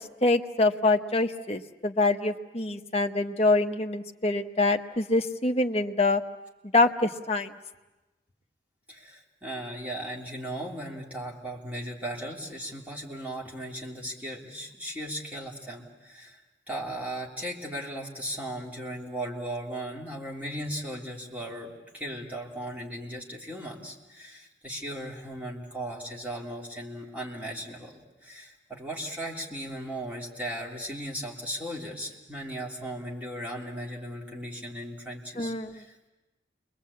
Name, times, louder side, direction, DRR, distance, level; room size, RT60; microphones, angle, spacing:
voice 1, 0.2-6.2 6.7-7.5 35.4-35.8, left 2 dB, 35° left, 5 dB, 1.0 m, -25 dB
voice 2, 8.9-16.4 16.7-36.1, right 1 dB, 10° right, -3 dB, 3.2 m, -37 dB
29.0 x 22.0 x 8.5 m, 1.1 s
head